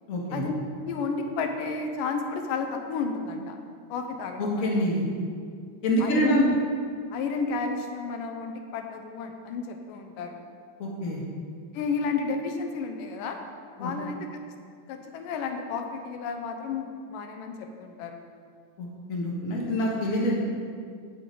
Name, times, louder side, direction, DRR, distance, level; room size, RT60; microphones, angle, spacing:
voice 1, 0.1-0.4 4.4-5.0 5.8-6.4 10.8-11.2 13.8-13.9 18.8-20.3, equal, 35° left, -3 dB, 1.4 m, -26 dB
voice 2, 0.8-3.6 3.9-4.8 6.0-6.6 7.1-10.5 11.7-13.4 13.8-14.2 14.9-18.3, left 4 dB, 80° left, 4 dB, 2.4 m, -32 dB
17.5 x 6.1 x 3.9 m, 2.1 s
omnidirectional pair, 3.8 m